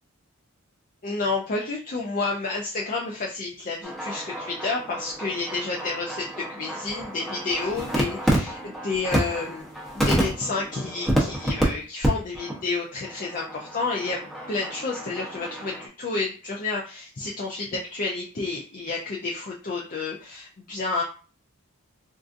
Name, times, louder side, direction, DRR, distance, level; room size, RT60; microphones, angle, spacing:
voice 1, 1.0-9.7 9.9-21.0, left 3 dB, 40° left, -2 dB, 0.4 m, -30 dB
sound 1, 3.8-11.7 12.0-12.1 12.3-12.6 13.0-15.9, right 1 dB, ahead, 0.8 m, -29 dB
3.7 x 2.5 x 2.5 m, 0.37 s
head